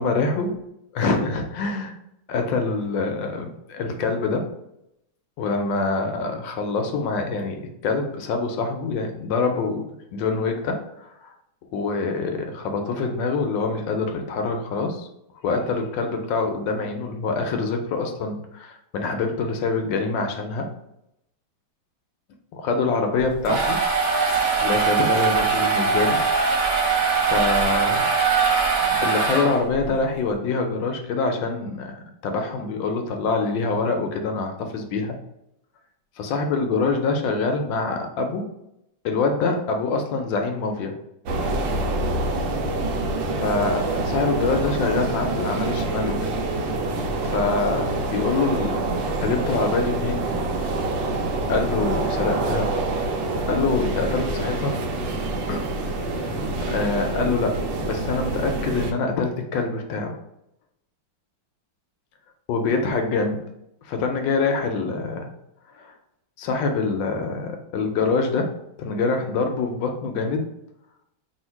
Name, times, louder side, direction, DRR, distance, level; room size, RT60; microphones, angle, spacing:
voice 1, 0.0-0.5 1.0-2.0 2.3-4.5 5.4-9.8 10.1-11.3 11.7-15.1 15.4-20.7 22.5-23.8 24.6-26.2 26.8-26.9 27.2-28.1 28.8-35.2 36.2-38.5 39.0-40.9 43.4-46.3 47.2-48.9 49.2-50.3 51.5-52.7 53.5-54.8 55.5-55.7 56.1-56.4 56.7-60.2 62.5-63.5 63.8-65.3 65.7-65.9 66.4-70.5, left 4 dB, 75° left, 4 dB, 1.2 m, -25 dB
sound 1, 23.2-29.9, right 5 dB, 45° right, 1.2 m, -21 dB
sound 2, 41.3-58.9, right 2 dB, 75° right, 1.2 m, -26 dB
3.1 x 2.8 x 4.4 m, 0.81 s
omnidirectional pair, 2.2 m